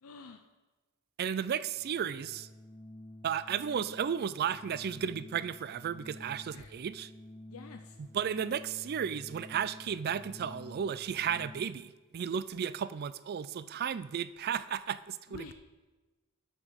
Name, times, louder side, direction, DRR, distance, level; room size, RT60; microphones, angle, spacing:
voice 1, 0.0-0.4 6.5-6.7 7.5-8.0 15.3-15.5, left 4 dB, 80° left, 5 dB, 0.6 m, -48 dB
voice 2, 1.2-2.5 3.2-7.1 8.0-15.5, right 8 dB, 45° right, 16 dB, 0.3 m, -34 dB
Organ, 1.6-11.9, left 1 dB, 15° left, 0.6 m, -51 dB
8.8 x 7.0 x 6.4 m, 1.2 s
head